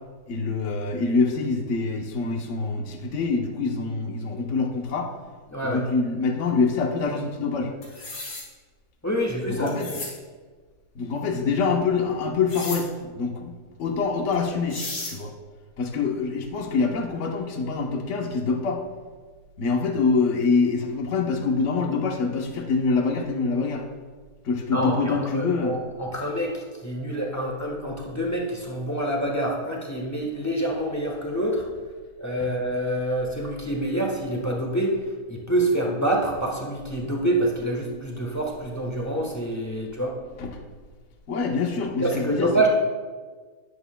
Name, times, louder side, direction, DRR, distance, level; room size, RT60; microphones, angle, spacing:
voice 1, 0.3-5.1 5.6-7.7 9.6-9.9 10.9-14.8 15.1-15.3 15.8-18.8 19.6-23.8 24.4-25.7 40.4-40.5 41.3-42.7, left 4 dB, 55° left, 2 dB, 1.2 m, -25 dB
voice 2, 5.5-5.8 9.0-9.8 24.7-31.7 32.2-35.0 35.3-40.2 42.0-42.7, right 1 dB, 10° left, -1 dB, 1.1 m, -26 dB
sound 1, 7.8-8.4 9.7-10.1 12.5-12.8 14.3-14.4 14.7-15.1, left 2 dB, 80° left, 2.4 m, -34 dB
11.0 x 9.5 x 2.3 m, 1.5 s
omnidirectional pair, 1.7 m